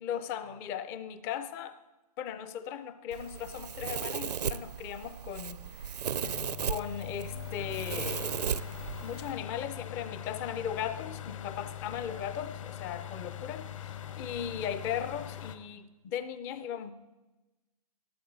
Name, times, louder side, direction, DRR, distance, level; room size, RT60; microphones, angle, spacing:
voice 1, 0.0-1.8 2.2-5.9 6.7-8.4 9.0-16.9, left 9 dB, 10° left, 12 dB, 0.4 m, -37 dB
Domestic sounds home sounds, 3.1-9.3, right 8 dB, 80° right, 0.6 m, -36 dB
sound 1, 6.2-15.6, left 11 dB, 50° left, 1.1 m, -42 dB
18.5 x 13.0 x 3.9 m, 1.1 s
hypercardioid pair, 150°, 20 cm